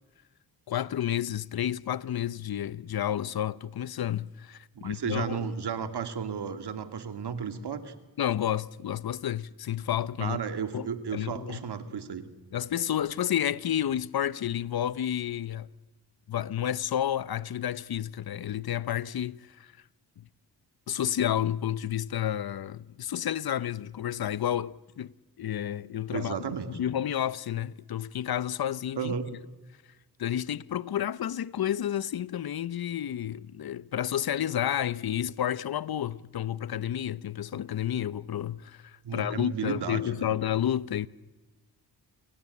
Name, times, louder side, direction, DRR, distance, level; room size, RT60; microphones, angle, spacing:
voice 1, 0.7-5.5 8.2-10.4 10.7-11.6 12.5-15.7 16.3-19.7 20.2-20.3 20.9-26.4 26.7-29.1 30.2-41.1, left 10 dB, 60° left, 0.8 m, -31 dB
voice 2, 4.7-7.9 10.2-12.2 26.1-26.7 29.0-29.3 39.0-40.2, right 7 dB, 70° right, 2.6 m, -33 dB
28.5 x 24.0 x 8.5 m
cardioid pair, 85°, 41 cm